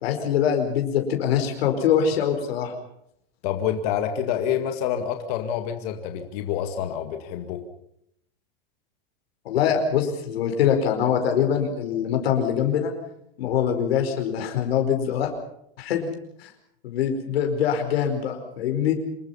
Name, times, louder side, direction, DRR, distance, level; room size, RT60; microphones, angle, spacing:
voice 1, 0.0-2.7 9.4-12.9 13.4-15.3 15.8-16.1 16.4-16.5 16.8-18.9, left 8 dB, 85° left, 4 dB, 4.8 m, -23 dB
voice 2, 3.4-7.6, left 9 dB, 40° left, 6 dB, 2.0 m, -27 dB
26.5 x 21.0 x 5.7 m, 0.73 s
supercardioid pair, 180°, 29 cm